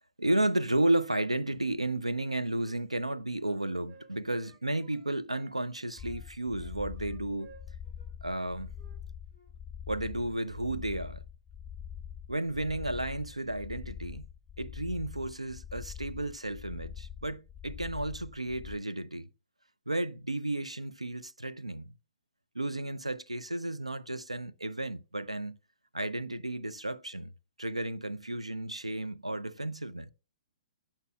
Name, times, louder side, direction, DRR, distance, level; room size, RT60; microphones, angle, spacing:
voice 1, 0.2-7.5 8.2-8.7 9.9-11.2 12.3-14.3 14.6-19.3 19.9-21.9 22.5-25.6 25.9-27.3 27.6-30.1, right 1 dB, 85° right, 0.6 m, -33 dB
Wind instrument woodwind instrument, 2.2-5.6 5.9-9.0 9.3-9.5, right 3 dB, 40° right, 2.5 m, -59 dB
sound 1, 6.0-18.8, left 8 dB, 10° left, 0.6 m, -44 dB
15.5 x 5.7 x 2.3 m
figure-of-eight pair, 115°, 3 cm